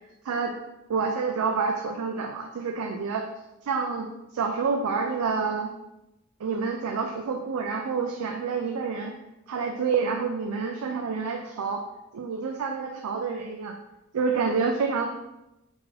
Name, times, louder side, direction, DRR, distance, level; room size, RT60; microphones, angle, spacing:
voice 1, 0.9-3.3 3.6-5.7 6.4-9.1 9.5-11.8 12.1-13.8 14.1-15.1, right 5 dB, 80° right, 3 dB, 0.4 m, -28 dB
4.1 x 2.6 x 4.0 m, 0.93 s
head